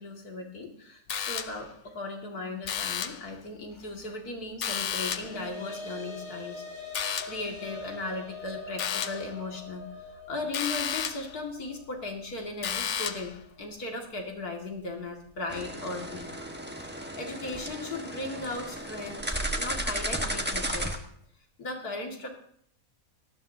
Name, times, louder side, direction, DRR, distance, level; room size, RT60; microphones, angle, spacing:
voice 1, 0.0-6.6 7.3-16.3 16.9-21.0 21.6-22.3, left 2 dB, 85° left, 1 dB, 2.7 m, -37 dB
sound 1, 1.1-1.8 2.6-3.3 4.6-5.4 6.9-7.5 8.8-9.3 10.5-11.3 12.6-13.4, left 8 dB, 60° left, 1.0 m, -32 dB
sound 2, 4.7-13.3, left 3 dB, 40° left, 3.7 m, -44 dB
sound 3, 15.5-21.0, right 1 dB, 5° right, 1.2 m, -34 dB
18.5 x 14.0 x 2.8 m, 0.64 s
omnidirectional pair, 1.6 m